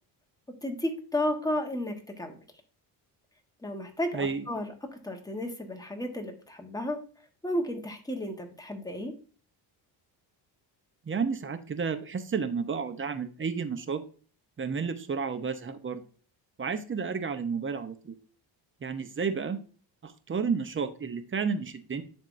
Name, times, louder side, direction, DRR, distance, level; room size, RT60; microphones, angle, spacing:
voice 1, 0.6-2.4 3.6-4.7 5.0-7.0 7.4-9.1, left 1 dB, 10° left, 3 dB, 1.2 m, -33 dB
voice 2, 4.1-4.5 11.1-14.0 14.6-16.0 16.6-18.2 18.8-19.6 20.0-22.0, right 5 dB, 25° right, 9 dB, 0.7 m, -31 dB
10.5 x 3.6 x 2.5 m, 0.40 s
cardioid pair, 95°, 47 cm